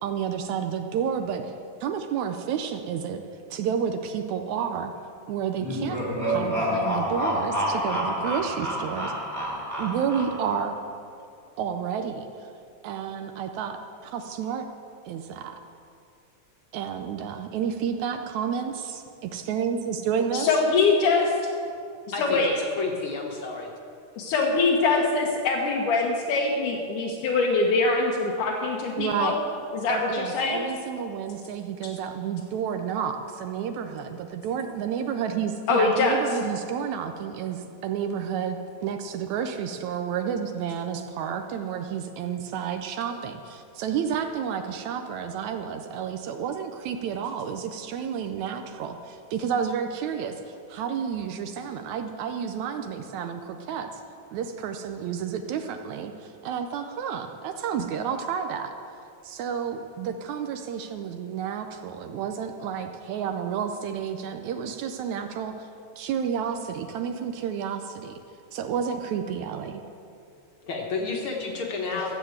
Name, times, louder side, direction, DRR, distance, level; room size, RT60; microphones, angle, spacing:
voice 1, 0.0-1.5 1.8-3.2 3.5-4.9 5.3-9.1 9.8-10.7 11.6-12.5 12.8-14.7 15.0-15.6 16.7-20.5 29.0-29.3 29.9-54.0 54.3-58.7 59.2-65.7 66.0-68.2 68.5-69.8, right 7 dB, 75° right, 6 dB, 1.9 m, -30 dB
sound 1, 5.6-10.7, equal, 5° right, 1.8 m, -28 dB
voice 2, 20.3-21.3 22.2-22.5 24.2-29.3 29.7-30.6 35.7-36.2 71.9-72.0, left 3 dB, 80° left, -2 dB, 2.6 m, -23 dB
voice 3, 22.1-23.7 70.6-72.1, left 4 dB, 50° left, 0 dB, 1.8 m, -31 dB
14.0 x 7.6 x 7.9 m, 2.5 s
omnidirectional pair, 3.6 m